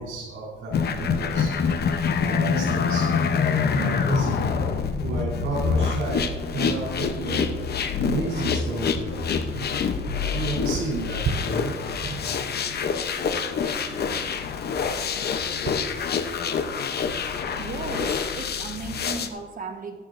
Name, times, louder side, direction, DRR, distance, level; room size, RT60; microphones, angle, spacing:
voice 1, 0.0-1.5 2.2-3.1 3.7-4.5 5.0-7.5 8.0-9.7 10.1-12.3, right 3 dB, 85° right, -6 dB, 3.7 m, -31 dB
sound 1, 0.7-19.3, left 6 dB, 50° left, 0.8 m, -26 dB
voice 2, 17.6-20.0, right 3 dB, 40° right, 5 dB, 1.2 m, -35 dB
14.0 x 11.0 x 2.6 m, 1.4 s
cardioid pair, 120°, 21 cm